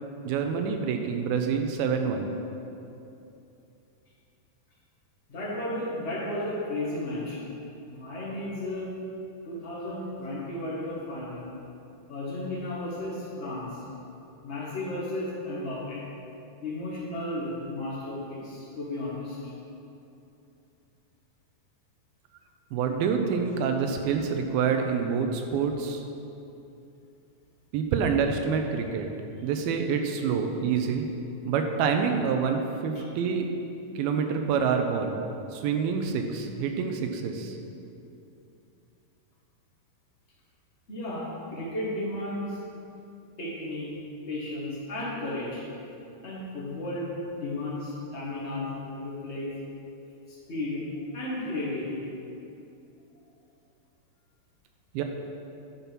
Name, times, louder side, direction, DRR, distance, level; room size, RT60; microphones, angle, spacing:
voice 1, 0.3-2.3 22.7-26.0 27.7-29.1 29.4-31.1 31.5-33.5 34.0-35.2 35.5-37.6 54.9-55.0, right 6 dB, 85° right, 5 dB, 2.4 m, -27 dB
voice 2, 5.3-7.4 7.9-8.9 9.4-11.4 12.1-13.8 14.4-16.0 16.6-19.5 32.9-33.0 40.9-42.6 43.4-43.9 44.3-45.6 46.2-49.5 50.3-50.8 51.1-52.1, left 1 dB, 90° left, -7 dB, 0.6 m, -34 dB
11.0 x 5.5 x 6.0 m, 2.8 s
omnidirectional pair, 4.5 m